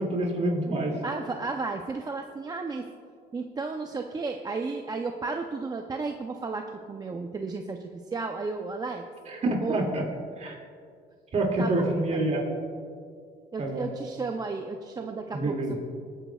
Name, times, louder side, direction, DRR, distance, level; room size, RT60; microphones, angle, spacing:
voice 1, 0.0-1.0 9.3-10.0 10.4-10.6 11.3-12.4 13.6-13.9 15.3-15.8, right 2 dB, 40° right, 0 dB, 2.3 m, -27 dB
voice 2, 1.0-2.9 3.3-9.1 9.6-9.8 11.6-12.2 13.5-15.8, right 4 dB, 25° right, 4 dB, 0.5 m, -33 dB
21.5 x 9.0 x 2.3 m, 2.2 s
cardioid pair, 110°, 17 cm